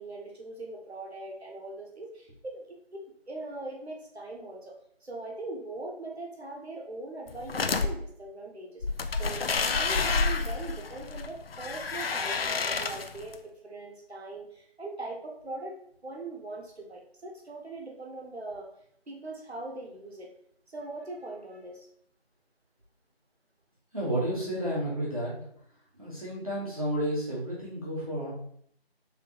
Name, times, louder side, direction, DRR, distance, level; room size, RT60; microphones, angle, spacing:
voice 1, 0.0-4.7 5.0-8.8 9.1-18.7 19.1-20.3 20.7-21.9, right 2 dB, 90° right, 0 dB, 1.2 m, -41 dB
sound 1, 7.3-7.9 8.8-13.3, left 4 dB, 65° left, 0.4 m, -29 dB
voice 2, 23.9-25.4 26.0-28.3, right 1 dB, 35° right, -8 dB, 1.1 m, -31 dB
3.7 x 3.3 x 2.9 m, 0.66 s
figure-of-eight pair, 180°, 31 cm